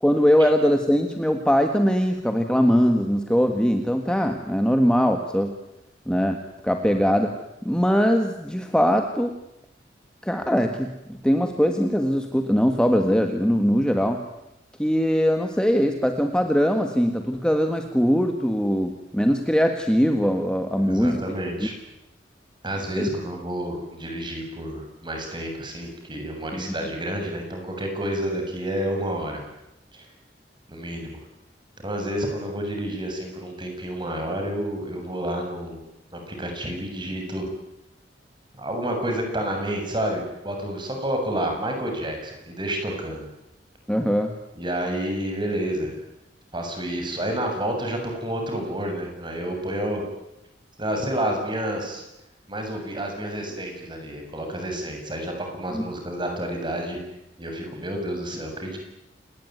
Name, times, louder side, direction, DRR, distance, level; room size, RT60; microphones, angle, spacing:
voice 1, 0.0-5.5 6.1-7.3 7.7-9.4 10.2-14.2 14.8-21.2 21.6-21.7 23.0-23.1 26.5-26.7 43.9-44.3 55.7-55.8, equal, 5° left, 5 dB, 1.8 m, -21 dB
voice 2, 20.8-21.7 22.6-29.4 29.9-30.1 30.7-31.2 31.8-35.8 36.1-37.5 38.6-43.3 44.6-46.0 46.5-50.0 50.8-52.0 52.5-57.0 57.4-58.8, right 1 dB, 25° right, 3 dB, 7.3 m, -29 dB
28.5 x 19.5 x 9.5 m, 0.88 s
head